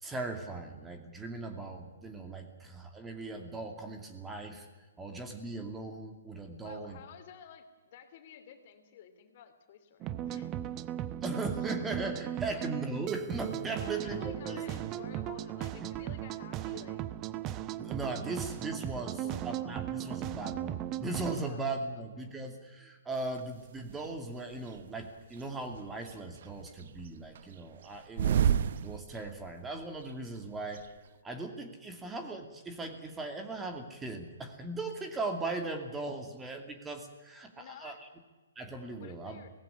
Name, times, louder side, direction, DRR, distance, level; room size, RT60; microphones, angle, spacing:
voice 1, 0.0-4.7 5.0-7.0 11.2-14.9 17.8-28.5 28.8-30.9 31.2-38.1 38.6-39.4, right 2 dB, 10° right, 5 dB, 2.6 m, -38 dB
voice 2, 6.6-10.5 12.5-12.7 13.8-17.0 19.2-19.5 19.9-20.0 21.5-21.7 21.9-22.4 37.5-38.0 39.0-39.5, left 9 dB, 50° left, 7 dB, 2.8 m, -52 dB
sound 1, 10.0-21.4, right 12 dB, 25° right, 0.8 m, -37 dB
sound 2, 23.3-23.4 23.9-24.8 25.3-26.2 26.4-29.6 29.8-29.9 30.1-30.9, right 9 dB, 55° right, 0.8 m, -30 dB
18.5 x 15.5 x 9.9 m, 1.2 s
hypercardioid pair, 135°, 0 cm